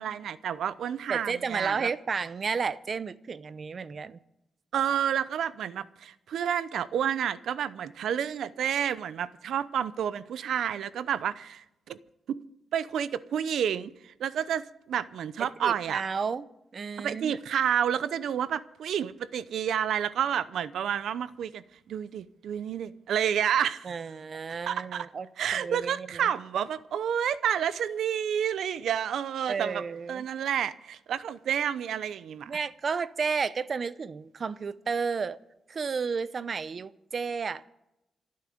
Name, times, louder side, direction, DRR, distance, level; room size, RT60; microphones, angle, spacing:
voice 1, 0.0-1.9 4.7-12.0 12.3-12.4 12.7-16.0 17.0-23.9 24.7-25.1 25.4-29.8 30.1-32.6, right 9 dB, 85° right, 0.7 m, -30 dB
voice 2, 1.1-4.2 15.6-16.5 16.7-17.4 23.8-26.3 29.5-30.3 32.5-35.4 35.7-37.7, right 5 dB, 40° right, 0.6 m, -32 dB
26.5 x 9.6 x 5.1 m
wide cardioid pair, 155°, 0 cm